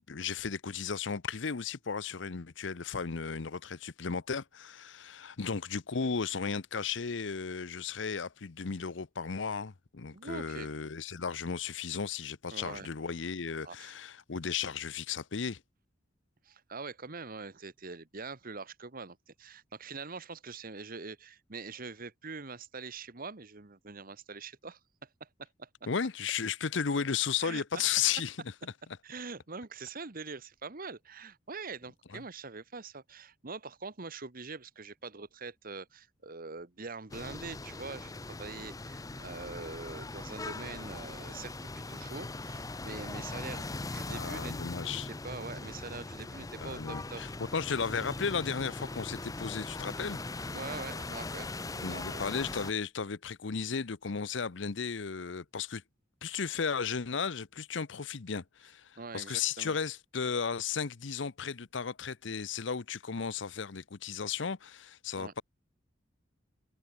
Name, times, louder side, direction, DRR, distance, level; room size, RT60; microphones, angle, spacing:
voice 1, 0.1-15.6 25.9-28.4 32.1-32.2 44.1-45.1 46.6-50.2 51.8-55.8 56.2-65.4, left 6 dB, 70° left, 0.8 m, -35 dB
voice 2, 10.1-10.7 12.5-12.9 13.6-13.9 16.4-25.7 27.4-27.8 29.0-41.6 41.9-44.5 44.9-47.2 50.5-52.2 59.0-59.8 65.2-65.3, right 4 dB, 50° right, 1.3 m, -44 dB
sound 1, 37.1-52.7, left 2 dB, 20° left, 0.6 m, -40 dB
head